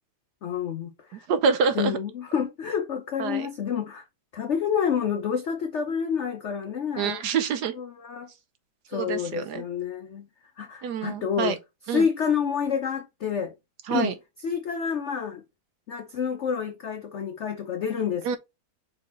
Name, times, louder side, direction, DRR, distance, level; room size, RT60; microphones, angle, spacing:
voice 1, 0.4-1.3 1.7-4.1 4.3-7.2 7.7-8.3 8.9-10.3 10.6-11.6 11.9-13.5 13.9-14.1 14.4-15.4 15.9-18.4, left 7 dB, 70° left, 0.6 m, -28 dB
voice 2, 1.1-2.0 3.2-3.5 7.0-7.7 8.9-9.6 10.8-11.5 11.9-12.1 13.9-14.1 18.2-18.4, right 6 dB, 70° right, 1.1 m, -26 dB
5.3 x 4.3 x 4.1 m
omnidirectional pair, 2.1 m